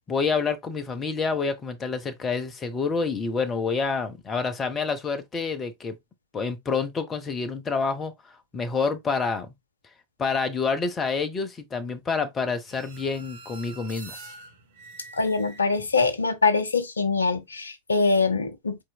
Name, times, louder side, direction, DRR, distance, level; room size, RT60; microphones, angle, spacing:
voice 1, 0.1-6.0 6.3-9.5 10.2-14.2, left 4 dB, 20° left, 0.8 m, -28 dB
sound 1, 12.7-16.2, right 3 dB, 60° right, 1.0 m, -46 dB
voice 2, 15.1-18.8, left 4 dB, 75° left, 0.7 m, -23 dB
4.4 x 3.6 x 2.3 m
figure-of-eight pair, 90°, 0 cm